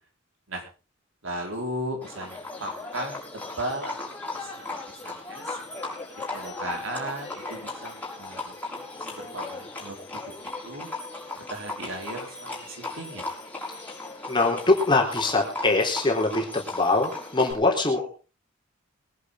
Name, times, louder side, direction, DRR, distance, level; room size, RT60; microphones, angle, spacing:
voice 1, 1.2-4.0 4.4-5.6 6.3-10.9 11.4-13.2, right 1 dB, 75° right, 2 dB, 5.1 m, -36 dB
Livestock farm animals working animals, 2.0-17.5, left 3 dB, 10° left, 6.1 m, -37 dB
voice 2, 14.3-18.1, left 3 dB, 25° left, 0 dB, 3.8 m, -23 dB
23.0 x 11.0 x 3.9 m, 0.34 s
head